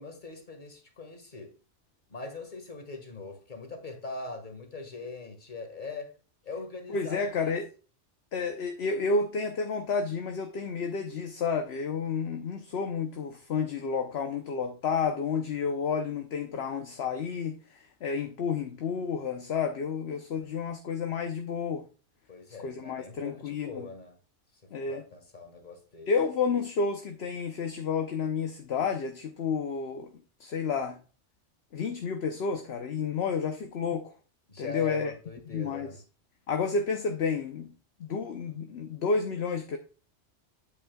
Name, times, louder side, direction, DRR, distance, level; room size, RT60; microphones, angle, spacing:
voice 1, 0.0-1.6 2.1-6.1 6.4-7.5 22.3-24.2 24.6-26.1 34.5-36.0, left 4 dB, 40° left, 1.9 m, -41 dB
voice 2, 6.9-7.7 8.3-21.9 22.6-23.9 24.7-25.0 26.1-30.1 30.4-31.0 31.7-34.1 34.6-35.1 35.5-36.0 36.5-37.7 38.0-39.8, left 5 dB, 65° left, 1.0 m, -30 dB
8.4 x 8.4 x 2.3 m
omnidirectional pair, 1.2 m